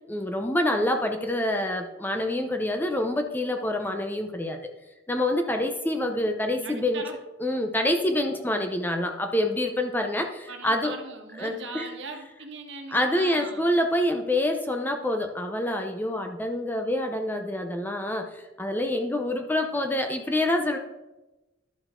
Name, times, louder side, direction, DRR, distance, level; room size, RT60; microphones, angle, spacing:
voice 1, 0.0-4.6 5.1-7.0 7.4-10.9 11.4-11.9 12.9-20.8, left 1 dB, 10° left, 4 dB, 0.6 m, -26 dB
voice 2, 6.6-7.2 10.5-13.6, right 4 dB, 70° right, 4 dB, 1.3 m, -39 dB
11.5 x 4.5 x 4.4 m, 1.0 s
head